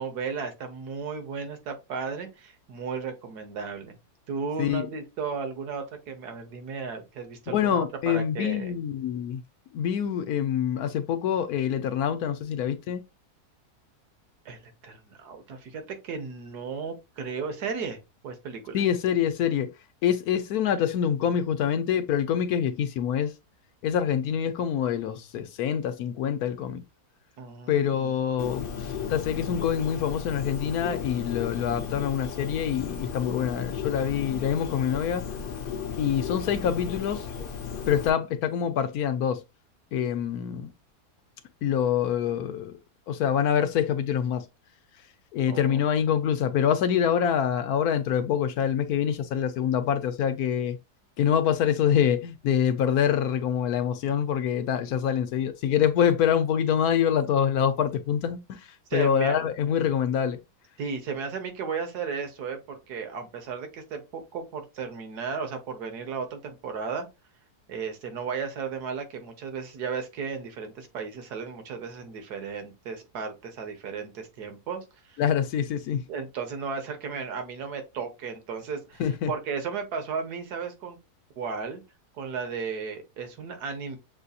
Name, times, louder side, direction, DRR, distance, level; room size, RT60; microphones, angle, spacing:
voice 1, 0.0-4.0 4.3-8.7 14.4-18.0 18.2-18.8 27.4-28.1 45.5-45.8 58.9-59.4 60.8-67.1 67.7-75.2 76.1-79.0 79.3-81.0 81.4-81.8 82.2-84.0, right 5 dB, 75° right, 1.7 m, -35 dB
voice 2, 7.5-9.4 9.7-13.0 18.7-19.7 20.0-23.3 23.8-26.8 27.7-35.2 36.0-37.3 37.9-39.4 39.9-40.7 41.6-42.8 43.1-44.5 45.3-50.8 51.2-58.6 58.9-60.4 75.2-76.0 79.0-79.3, left 8 dB, 75° left, 1.1 m, -25 dB
Bird, 28.4-38.1, left 7 dB, 55° left, 0.6 m, -35 dB
6.8 x 2.7 x 2.4 m
omnidirectional pair, 1.7 m